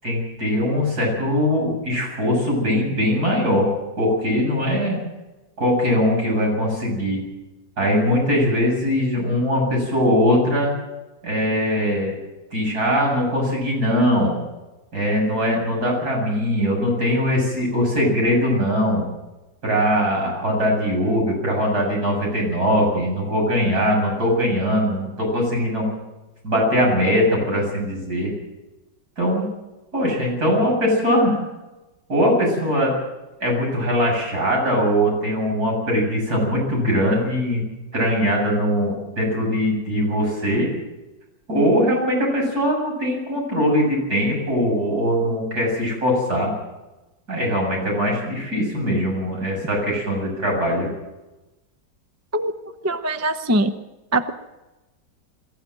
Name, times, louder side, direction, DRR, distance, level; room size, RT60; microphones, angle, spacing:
voice 1, 0.0-3.7 4.0-5.0 5.6-7.2 7.8-10.7 11.2-12.1 12.5-14.3 14.9-19.0 19.6-25.8 26.4-28.3 29.2-29.4 29.9-31.4 32.1-32.9 33.4-37.6 37.9-40.7 41.5-46.5 47.3-50.9, equal, 55° right, -1 dB, 8.2 m, -21 dB
voice 2, 52.8-53.7 54.1-54.3, right 1 dB, 20° right, 9 dB, 0.4 m, -21 dB
23.0 x 15.0 x 7.7 m, 1.0 s
omnidirectional pair, 1.9 m